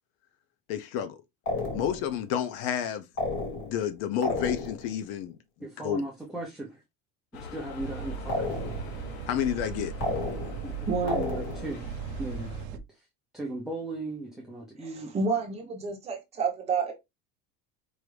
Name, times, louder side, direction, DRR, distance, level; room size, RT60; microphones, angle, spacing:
voice 1, 0.7-1.2 1.7-3.1 3.6-5.4 5.8-6.0 9.3-9.9, left 9 dB, 55° left, 0.6 m, -30 dB
sound 1, 1.5-2.2 3.2-3.9 4.2-5.0 8.3-9.0 10.0-10.7 11.1-11.8, left 2 dB, 40° left, 1.6 m, -32 dB
voice 2, 5.6-6.8 7.4-8.5 10.6-11.9 12.2-12.5 12.9-13.1 13.3-15.1, right 2 dB, ahead, 0.5 m, -37 dB
sound 2, 7.3-12.7, left 3 dB, 75° left, 1.1 m, -43 dB
sound 3, 7.8-12.8, right 8 dB, 65° right, 0.6 m, -38 dB
voice 3, 10.9-11.2 14.8-16.9, right 4 dB, 20° right, 1.0 m, -29 dB
4.7 x 2.6 x 3.2 m
cardioid pair, 175°, 31 cm